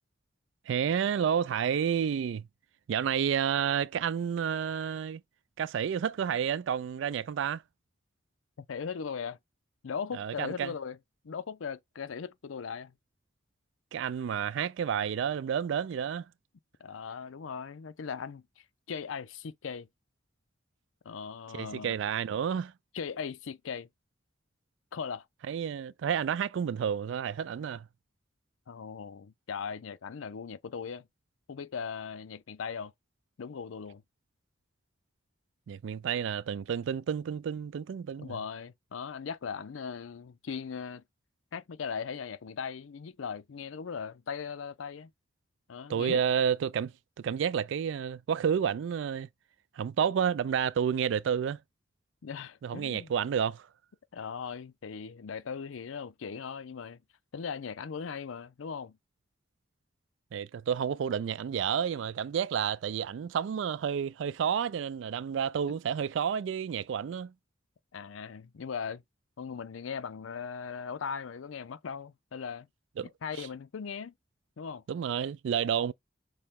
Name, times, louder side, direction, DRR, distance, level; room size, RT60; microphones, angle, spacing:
voice 1, 0.7-2.5 2.9-5.2 5.6-7.6 10.2-10.7 13.9-16.2 21.5-22.7 25.5-27.9 35.7-38.4 45.9-49.3 49.8-51.6 52.6-53.7 60.3-67.3 73.0-73.1 73.4-73.5 74.9-75.9, right 8 dB, 70° right, 0.3 m, -30 dB
voice 2, 8.7-9.4 9.8-11.0 11.2-12.9 16.8-19.9 21.0-22.0 22.9-23.9 24.9-25.3 28.7-31.1 31.5-32.9 33.4-34.0 38.2-41.0 41.5-45.1 45.7-46.2 52.2-53.1 54.1-57.0 57.3-59.0 67.9-69.0 69.4-72.7 73.2-74.1 74.6-74.8, left 6 dB, 85° left, 0.5 m, -39 dB
6.5 x 2.2 x 3.6 m
head